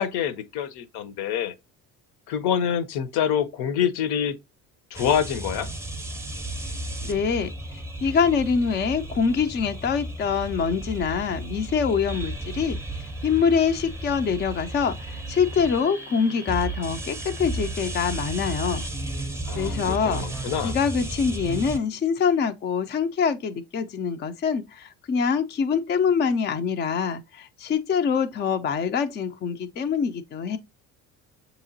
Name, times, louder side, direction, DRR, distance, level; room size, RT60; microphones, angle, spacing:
voice 1, 0.0-1.5 2.3-4.3 4.9-5.7 19.5-20.8, left 8 dB, 65° left, 0.7 m, -26 dB
sound 1, 4.9-21.8, right 1 dB, 5° right, 0.6 m, -34 dB
voice 2, 7.0-12.8 13.2-18.8 19.5-30.6, left 6 dB, 25° left, 0.3 m, -25 dB
6.6 x 2.9 x 2.6 m
supercardioid pair, 80°, 41 cm